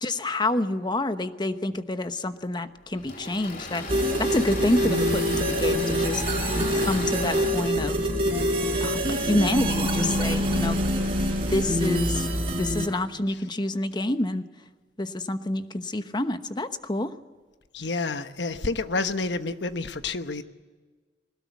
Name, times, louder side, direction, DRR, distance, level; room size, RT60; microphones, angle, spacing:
voice 1, 0.0-3.8 4.2-6.2 6.7-8.0 8.8-10.8 11.2-12.3 12.6-14.4 15.0-17.1, left 1 dB, 25° left, 10 dB, 1.0 m, -28 dB
Engine / Mechanisms, 2.9-11.3, left 3 dB, 50° left, 3.1 m, -38 dB
sound 1, 3.9-12.9, equal, 35° right, 5.1 m, -25 dB
voice 2, 17.7-20.4, left 3 dB, 85° left, 10 dB, 1.2 m, -29 dB
21.5 x 19.5 x 8.4 m, 1.4 s
head